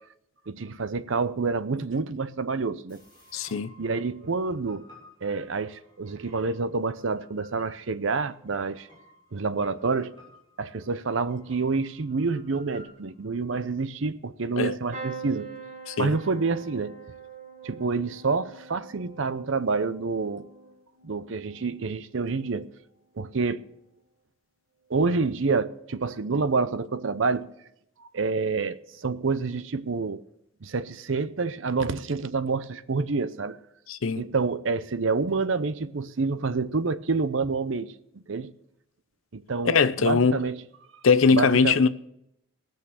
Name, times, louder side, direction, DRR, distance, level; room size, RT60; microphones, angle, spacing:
voice 1, 0.5-3.0 3.8-4.8 5.2-8.9 9.3-10.1 10.6-15.5 16.0-16.9 17.6-20.5 21.0-22.7 23.2-23.6 24.9-27.5 28.0-30.2 30.6-33.6 34.2-37.9 38.3-38.5 39.3-40.6 41.3-41.8, right 4 dB, 65° right, 0.7 m, -28 dB
sound 1, 2.9-13.7, left 1 dB, 20° left, 6.7 m, -56 dB
voice 2, 3.3-3.7 14.6-14.7 15.9-16.2 33.9-34.2 39.6-40.4 41.0-41.9, left 5 dB, 75° left, 0.7 m, -21 dB
sound 2, 14.9-22.8 23.2-23.7 25.0-25.2 25.4-25.5, right 5 dB, 35° right, 1.9 m, -45 dB
19.0 x 6.6 x 7.0 m
head